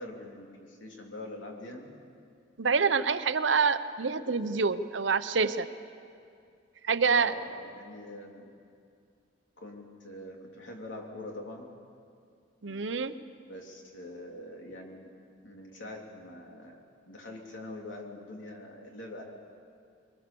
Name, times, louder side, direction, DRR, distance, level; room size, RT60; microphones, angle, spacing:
voice 1, 0.0-2.0 7.1-8.5 9.6-11.7 12.7-12.8 13.5-15.1 15.4-19.2, left 1 dB, 85° left, 1 dB, 3.2 m, -44 dB
voice 2, 2.6-5.7 6.8-7.3 12.6-13.1, right 5 dB, 75° right, 12 dB, 0.8 m, -26 dB
23.0 x 20.0 x 7.0 m, 2.4 s
head